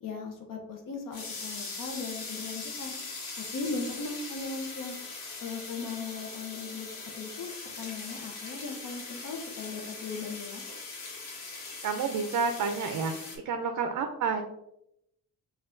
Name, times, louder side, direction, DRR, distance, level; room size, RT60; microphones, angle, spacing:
voice 1, 0.0-2.9 3.5-4.9 5.4-6.9 7.2-7.5 7.8-10.6, left 4 dB, 60° left, 2 dB, 0.7 m, -38 dB
sound 1, 1.1-13.4, left 3 dB, 80° left, 1.0 m, -41 dB
voice 2, 11.8-14.4, right 5 dB, 55° right, 5 dB, 0.4 m, -30 dB
5.4 x 2.3 x 2.6 m, 0.80 s
cardioid pair, 130°, 38 cm